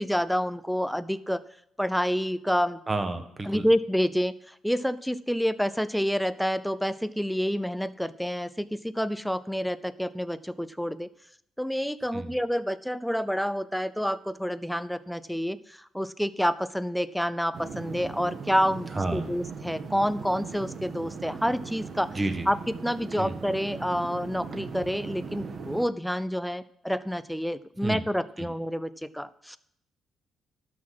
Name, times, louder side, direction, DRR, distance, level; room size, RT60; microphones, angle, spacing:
voice 1, 0.0-1.4 1.8-2.8 3.4-11.1 11.6-22.1 22.5-29.6, equal, ahead, 15 dB, 0.6 m, -28 dB
voice 2, 2.9-3.6 12.1-12.3 19.0-19.3 22.1-22.5 23.2-23.3 27.8-28.0 28.4-28.5, right 2 dB, 25° right, 7 dB, 1.5 m, -30 dB
sound 1, 17.5-25.9, right 5 dB, 50° right, 1.4 m, -39 dB
12.5 x 6.3 x 6.0 m, 0.70 s
cardioid pair, 90°, 0 cm